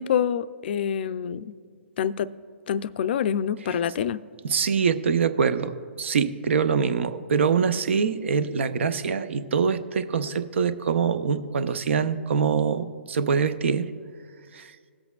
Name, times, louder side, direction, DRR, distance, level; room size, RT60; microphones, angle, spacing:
voice 1, 0.0-1.5 2.0-2.3 2.7-4.2, left 8 dB, 50° left, 14 dB, 0.4 m, -26 dB
voice 2, 4.4-5.7 6.0-13.9 14.5-14.7, right 6 dB, 65° right, 12 dB, 0.6 m, -24 dB
20.0 x 7.9 x 2.3 m, 2.1 s
hypercardioid pair, 140°, 7 cm